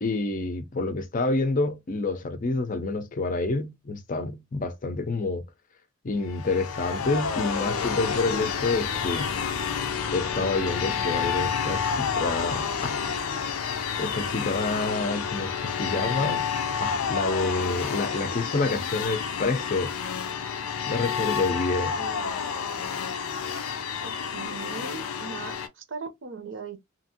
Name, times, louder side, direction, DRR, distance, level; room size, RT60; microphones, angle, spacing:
voice 1, 0.0-5.4 6.0-9.3 10.1-13.0 13.4-13.5 14.0-16.4 16.8-19.9 20.9-21.9, left 3 dB, 40° left, 0.5 m, -28 dB
sound 1, 6.2-25.7, left 6 dB, 90° left, 0.5 m, -29 dB
voice 2, 18.5-18.8 21.4-22.3 24.0-26.8, right 4 dB, 60° right, 0.6 m, -40 dB
2.8 x 2.5 x 2.7 m
head